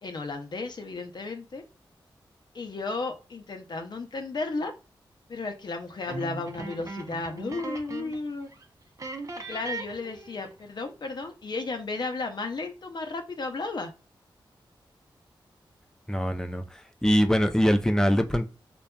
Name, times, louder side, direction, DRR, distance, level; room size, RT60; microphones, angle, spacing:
voice 1, 0.0-1.6 2.5-4.7 5.3-8.5 9.4-13.9, left 3 dB, 55° left, 6 dB, 0.6 m, -34 dB
sound 1, 6.1-8.3 8.5-8.6 9.0-10.6, right 3 dB, 40° right, 0.6 m, -38 dB
voice 2, 16.1-18.5, equal, 5° left, 6 dB, 0.4 m, -23 dB
2.5 x 2.2 x 2.2 m, 0.33 s
wide cardioid pair, 80°, 9 cm